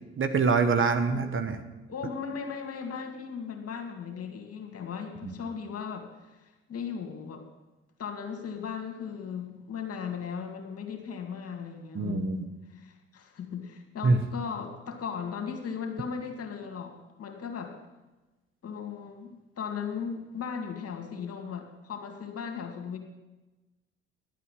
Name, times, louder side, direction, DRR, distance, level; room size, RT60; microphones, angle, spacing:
voice 1, 0.2-1.6 5.2-5.3 11.9-12.4 14.0-14.2, right 4 dB, 40° right, 8 dB, 1.3 m, -25 dB
voice 2, 1.9-7.5 8.0-12.4 12.7-17.7 18.6-23.0, left 6 dB, 45° left, 4 dB, 2.3 m, -37 dB
11.0 x 8.4 x 7.6 m, 1.1 s
hypercardioid pair, 50°, 33 cm